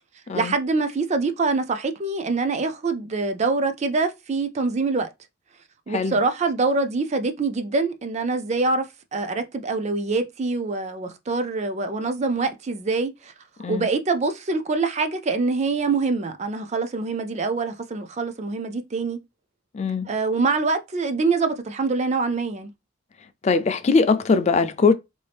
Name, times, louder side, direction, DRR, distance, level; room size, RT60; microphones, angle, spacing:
voice 1, 0.3-5.1 5.9-13.3 13.7-19.2 20.1-22.7, right 3 dB, 35° right, 0.4 m, -25 dB
voice 2, 5.9-6.2 13.6-13.9 19.7-20.1 23.4-24.9, left 4 dB, 35° left, 0.4 m, -21 dB
3.5 x 2.6 x 3.4 m
head